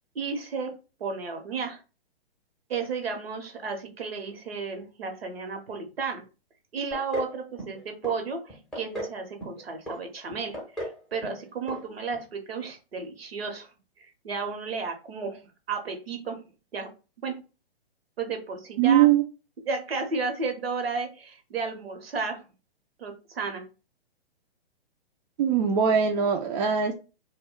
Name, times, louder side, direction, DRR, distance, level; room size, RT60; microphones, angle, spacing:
voice 1, 0.1-0.7 1.0-1.8 2.7-6.2 6.7-13.7 14.2-15.4 15.7-16.4 16.7-16.9 17.2-17.4 18.2-19.1 19.7-22.4 23.0-23.6, right 4 dB, 75° right, 5 dB, 0.9 m, -33 dB
sound 1, 6.9-7.3 7.6-8.2 8.5-9.1 9.4-10.0 10.3-11.0 11.2-11.4 11.7-11.8 12.1-12.2, equal, ahead, 0.7 m, -35 dB
voice 2, 18.8-19.2 25.4-26.9, right 8 dB, 45° right, 3 dB, 0.4 m, -21 dB
2.2 x 2.2 x 3.6 m, 0.32 s
figure-of-eight pair, 120°, 30 cm